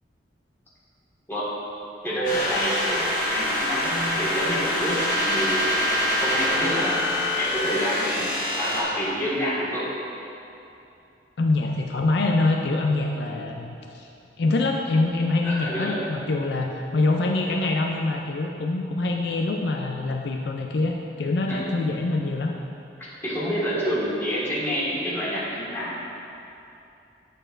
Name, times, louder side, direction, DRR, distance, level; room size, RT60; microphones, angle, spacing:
voice 1, 2.0-5.6 6.2-8.3 8.6-9.9 13.1-13.3 15.4-16.0 21.5-21.6 23.2-25.9, equal, 15° left, -9 dB, 1.7 m, -28 dB
sound 1, 2.2-8.8, left 1 dB, 45° left, 1.2 m, -25 dB
voice 2, 11.4-14.1 14.4-22.5, left 2 dB, 70° left, 2 dB, 0.4 m, -25 dB
9.9 x 6.6 x 2.5 m, 2.8 s
head